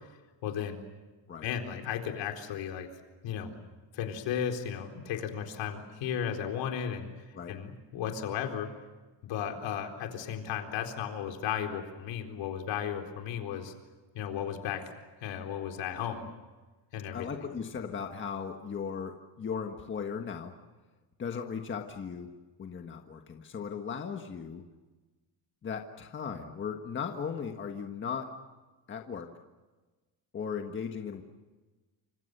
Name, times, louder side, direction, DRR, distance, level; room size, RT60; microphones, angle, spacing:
voice 1, 0.4-0.8 1.4-2.9 3.2-3.5 3.9-7.1 7.5-8.7 9.2-13.7 14.1-14.8 15.2-16.3 16.9-17.3, left 8 dB, 65° left, 4 dB, 4.2 m, -34 dB
voice 2, 17.1-20.5 21.2-22.3 22.6-24.6 25.6-28.3 28.9-29.3 30.3-31.2, left 6 dB, 25° left, 4 dB, 1.6 m, -37 dB
29.0 x 26.0 x 6.8 m, 1.2 s
cardioid pair, 175°, 46 cm